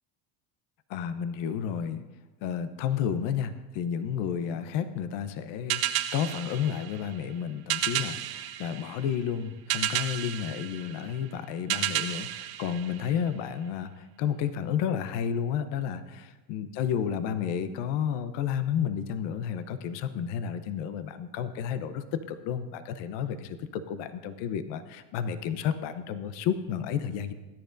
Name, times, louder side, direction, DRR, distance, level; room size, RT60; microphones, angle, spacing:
voice 1, 0.9-2.1 2.4-27.3, left 8 dB, 65° left, 11 dB, 0.9 m, -31 dB
sound 1, 5.7-13.6, right 12 dB, 50° right, 0.9 m, -33 dB
19.5 x 10.5 x 2.6 m, 1.2 s
supercardioid pair, 85°, 47 cm